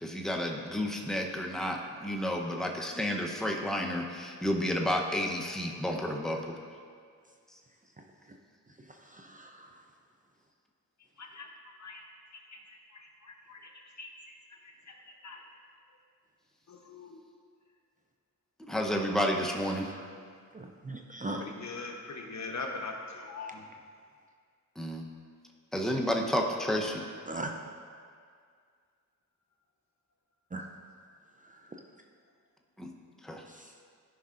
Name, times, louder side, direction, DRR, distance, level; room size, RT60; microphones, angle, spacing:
voice 1, 0.0-6.5 18.6-19.9 24.8-25.0 25.7-27.0 32.8-32.9 33.2-33.4, equal, ahead, 0 dB, 0.9 m, -31 dB
voice 2, 9.1-9.7 20.5-21.4 27.3-27.5 30.5-30.7 33.5-33.6, right 2 dB, 25° right, 2 dB, 0.6 m, -38 dB
voice 3, 12.9-13.6 14.0-14.1 15.2-15.4 16.7-17.2 21.4-23.6, left 3 dB, 55° left, 2 dB, 1.1 m, -41 dB
13.0 x 5.4 x 2.6 m, 2.1 s
cardioid pair, 55°, 34 cm